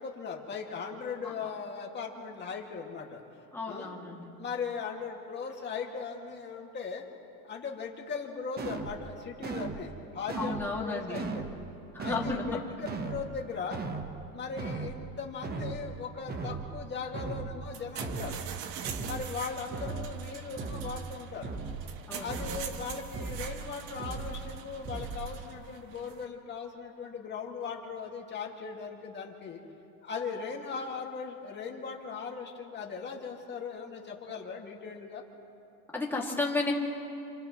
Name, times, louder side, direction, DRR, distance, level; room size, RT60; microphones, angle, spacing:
voice 1, 0.0-3.2 3.7-4.0 4.4-7.0 7.4-11.5 12.0-13.8 14.3-18.4 19.0-21.5 22.2-29.6 30.0-35.2, left 5 dB, 25° left, -1 dB, 2.3 m, -38 dB
voice 2, 3.5-4.3 10.3-11.4 11.9-12.7 22.1-22.6 35.9-36.7, left 3 dB, 5° left, -3 dB, 2.5 m, -33 dB
sound 1, 8.6-9.0 9.4-9.8 10.3-10.7 11.1-11.6 12.0-12.4 12.8-13.3 13.7-14.1 14.6-15.0 15.4-15.8 16.3-16.7 17.1-17.6 18.0-18.4 18.8-19.3 19.7-20.1 20.6-21.0 21.4-21.9 22.3-22.7 23.1-23.6 24.0-24.4 24.8-25.3, right 4 dB, 20° right, 1.2 m, -37 dB
sound 2, 17.6-26.3, right 8 dB, 50° right, 1.3 m, -43 dB
29.5 x 27.5 x 3.2 m, 2.7 s
supercardioid pair, 140°, 46 cm